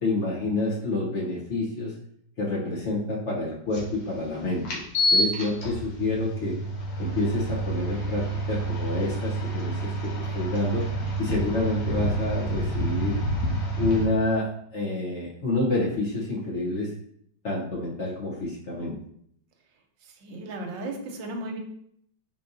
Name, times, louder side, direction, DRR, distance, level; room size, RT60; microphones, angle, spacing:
voice 1, 0.0-1.9 2.4-4.6 5.1-6.6 7.0-9.9 10.3-10.9 11.2-13.2 13.7-16.9 17.4-18.9, left 2 dB, 50° left, -4 dB, 1.0 m, -28 dB
sound 1, 3.7-3.8 4.7-14.0, right 1 dB, 85° left, 1.7 m, -28 dB
voice 2, 20.0-21.6, right 2 dB, 85° right, 4 dB, 1.4 m, -35 dB
4.6 x 3.8 x 2.6 m, 0.67 s
omnidirectional pair, 2.0 m